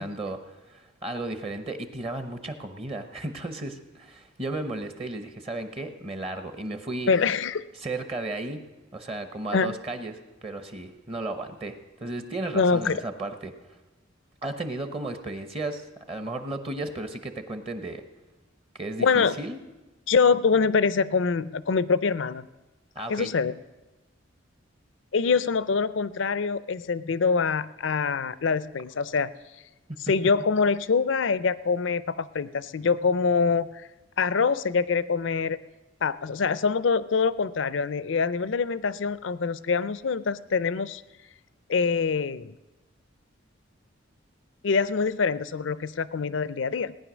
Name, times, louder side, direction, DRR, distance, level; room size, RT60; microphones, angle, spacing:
voice 1, 0.0-7.1 7.7-8.6 8.9-13.5 14.4-18.0 18.7-19.6 22.9-23.3 29.9-30.0, right 2 dB, 30° right, 8 dB, 0.8 m, -34 dB
voice 2, 7.1-7.6 9.5-9.7 12.5-13.0 19.0-19.4 20.1-22.5 23.1-23.5 25.1-29.3 30.0-33.9 34.2-35.6 36.0-41.0 41.7-42.5 44.6-47.0, left 5 dB, 70° left, 17 dB, 0.5 m, -24 dB
18.0 x 9.9 x 6.2 m, 1.1 s
head